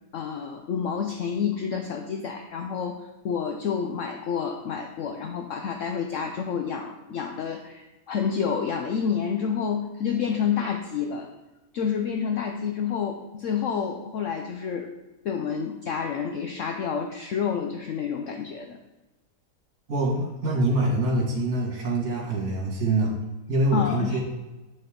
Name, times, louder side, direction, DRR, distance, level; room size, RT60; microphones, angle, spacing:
voice 1, 0.1-11.3 11.7-14.9 15.2-18.8 23.7-24.2, left 7 dB, 65° left, 4 dB, 0.8 m, -29 dB
voice 2, 19.9-23.1 23.5-24.2, right 2 dB, 65° right, -4 dB, 2.7 m, -25 dB
7.7 x 6.3 x 3.7 m, 1.1 s
omnidirectional pair, 1.7 m